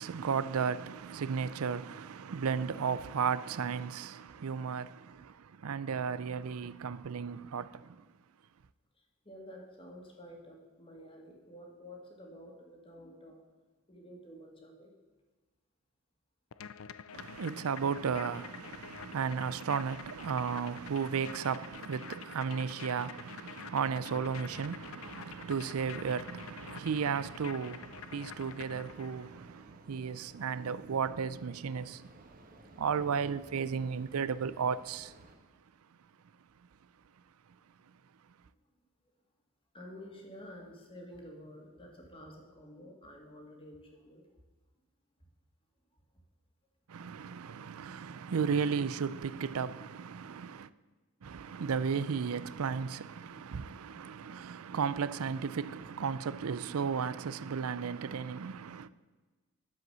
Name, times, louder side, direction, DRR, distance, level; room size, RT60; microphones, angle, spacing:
voice 1, 0.0-8.0 17.1-32.1 32.8-35.1 46.9-50.7 51.2-58.9, right 6 dB, 85° right, 0.5 m, -34 dB
voice 2, 9.0-13.5 13.9-14.9 17.1-17.3 17.6-18.2 20.7-20.9 39.7-44.3, equal, 25° left, 2.3 m, -51 dB
sound 1, 16.5-29.3, left 8 dB, 75° left, 0.5 m, -48 dB
sound 2, 24.3-35.4, right 2 dB, 40° right, 1.3 m, -58 dB
11.0 x 7.8 x 6.8 m
head